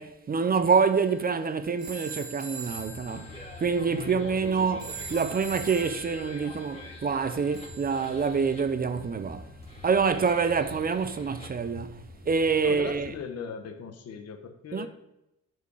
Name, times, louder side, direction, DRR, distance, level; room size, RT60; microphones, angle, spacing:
voice 1, 0.0-9.5 9.8-13.1 14.7-14.9, right 5 dB, 30° right, 0.5 m, -26 dB
sound 1, 0.7-8.8, right 3 dB, 90° right, 2.2 m, -44 dB
sound 2, 2.7-13.2, left 2 dB, 20° left, 2.0 m, -45 dB
voice 2, 3.8-4.8 12.6-14.9, left 6 dB, 55° left, 1.0 m, -40 dB
8.2 x 4.7 x 4.8 m
cardioid pair, 90°, 30 cm